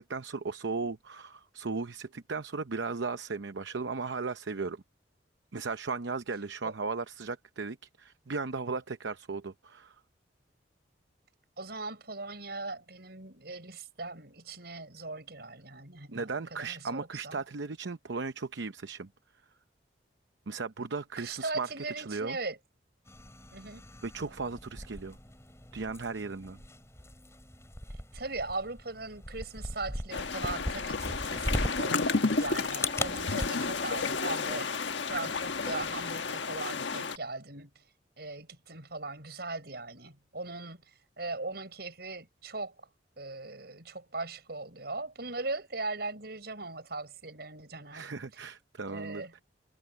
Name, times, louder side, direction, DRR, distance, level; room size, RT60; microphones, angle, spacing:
voice 1, 0.0-4.8 5.5-9.9 16.1-19.1 20.5-21.7 22.0-22.4 24.0-25.2 25.7-26.6 47.9-49.4, right 4 dB, 80° right, 0.8 m, -36 dB
voice 2, 11.6-17.4 21.2-22.6 23.5-23.8 28.1-34.8 35.1-37.7 38.2-40.8 41.2-42.7 43.2-48.1 48.9-49.3, right 3 dB, 60° right, 7.2 m, -39 dB
sound 1, 23.1-33.5, left 1 dB, 15° left, 7.0 m, -39 dB
sound 2, 30.1-37.2, left 4 dB, 85° left, 1.4 m, -32 dB
head